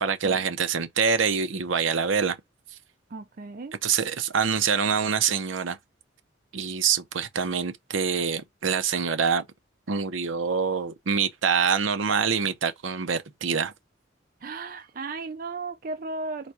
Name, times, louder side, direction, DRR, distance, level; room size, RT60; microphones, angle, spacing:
voice 1, 0.0-2.4 3.8-5.8 6.5-9.4 9.9-13.7, right 6 dB, 80° right, 0.7 m, -25 dB
voice 2, 3.1-3.8 14.4-16.5, right 3 dB, 45° right, 0.4 m, -35 dB
4.1 x 2.3 x 4.6 m
head